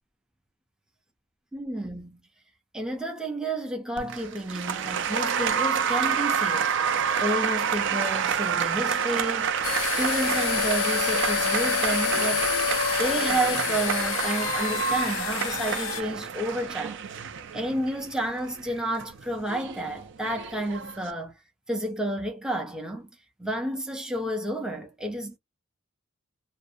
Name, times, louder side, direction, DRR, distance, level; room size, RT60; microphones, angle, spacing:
voice 1, 1.5-2.2 2.7-9.6 9.9-12.5 13.0-17.0 17.5-21.3 21.7-23.1 23.4-25.4, right 1 dB, 5° right, 0.4 m, -31 dB
Applause, 4.0-21.1, right 7 dB, 65° right, 0.4 m, -28 dB
sound 1, 9.6-16.0, left 9 dB, 75° left, 0.4 m, -28 dB
2.5 x 2.0 x 2.5 m
head